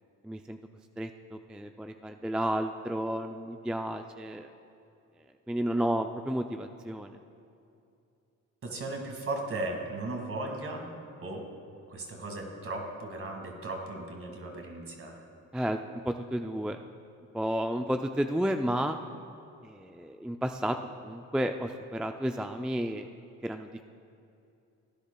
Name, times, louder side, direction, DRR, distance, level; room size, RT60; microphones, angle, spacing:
voice 1, 0.2-0.6 1.0-4.5 5.5-7.2 15.5-16.8 17.3-19.0 19.6-20.8 21.0-23.1 23.4-23.7, equal, 5° right, 6 dB, 0.3 m, -32 dB
voice 2, 8.6-10.8 11.2-11.4 11.9-15.2, right 2 dB, 45° right, 2 dB, 2.0 m, -36 dB
17.5 x 10.0 x 2.3 m, 2.6 s
cardioid pair, 90°, 30 cm